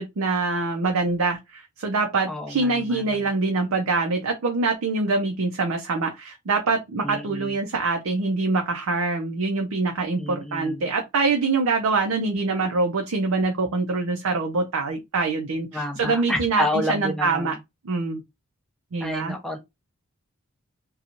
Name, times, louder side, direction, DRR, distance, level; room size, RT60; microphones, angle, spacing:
voice 1, 0.0-17.5 17.8-18.2 18.9-19.4, right 3 dB, 80° right, 0.5 m, -24 dB
voice 2, 2.3-3.3 7.0-7.5 10.1-10.9 15.7-17.6 19.0-19.6, left 1 dB, ahead, 0.6 m, -30 dB
2.8 x 2.3 x 2.5 m
head